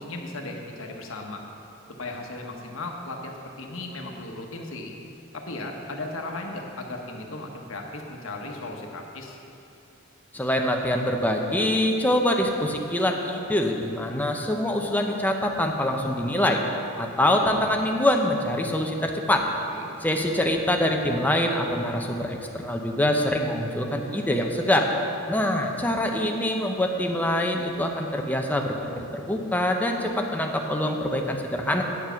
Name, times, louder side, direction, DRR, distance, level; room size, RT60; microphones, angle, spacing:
voice 1, 0.0-1.4 2.0-4.9 5.3-9.4 19.7-19.9, left 2 dB, 65° left, 1 dB, 1.2 m, -36 dB
voice 2, 10.3-16.6 17.0-19.4 20.0-24.9 25.3-31.8, left 1 dB, 10° left, 2 dB, 0.7 m, -24 dB
9.5 x 7.3 x 5.7 m, 2.9 s
head